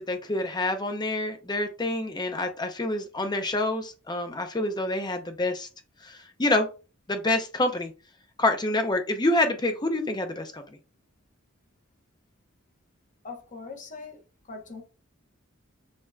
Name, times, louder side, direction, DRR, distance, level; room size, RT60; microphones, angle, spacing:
voice 1, 0.0-5.7 6.0-6.7 7.1-7.9 8.4-10.6, left 2 dB, 20° left, 0.7 m, -27 dB
voice 2, 13.2-14.2 14.5-14.8, left 4 dB, 40° left, 1.1 m, -41 dB
6.5 x 2.9 x 2.3 m
head